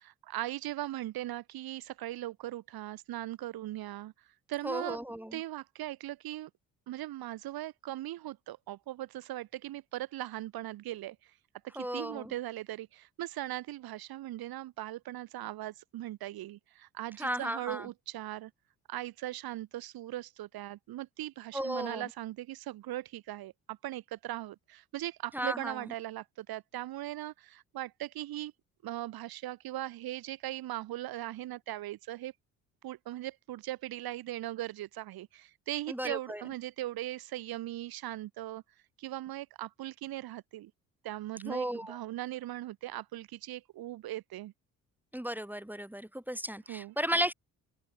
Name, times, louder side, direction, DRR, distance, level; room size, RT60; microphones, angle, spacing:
voice 1, 0.0-4.1 4.5-5.0 5.3-6.5 6.9-11.3 11.6-18.5 18.9-28.5 28.8-32.3 32.8-38.6 39.0-40.7 41.0-44.5 46.7-46.9, right 15 dB, 55° right, 3.0 m, -39 dB
voice 2, 4.6-5.4 11.8-12.3 17.2-17.9 21.5-22.1 25.3-25.8 35.9-36.4 41.5-42.0 45.1-47.3, equal, 5° right, 5.2 m, -34 dB
figure-of-eight pair, 50°, 42 cm